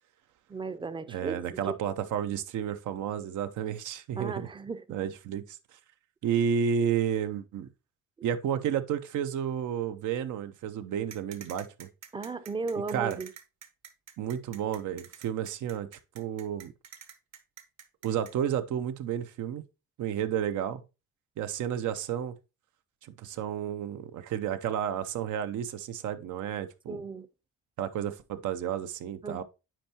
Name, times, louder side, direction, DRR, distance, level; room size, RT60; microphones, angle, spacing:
voice 1, 0.5-1.8 4.2-4.9 12.1-13.3 26.9-27.3 29.2-29.4, right 4 dB, 15° right, 0.5 m, -35 dB
voice 2, 1.1-4.5 4.9-5.6 6.2-7.7 8.2-11.9 12.9-13.2 14.2-15.9 16.1-16.7 18.0-19.6 20.0-20.8 21.4-22.3 23.0-27.0 27.8-29.4, right 9 dB, 80° right, 0.6 m, -31 dB
sound 1, 11.1-18.3, right 8 dB, 60° right, 1.0 m, -48 dB
8.9 x 4.4 x 2.8 m
cardioid pair, 90°, 30 cm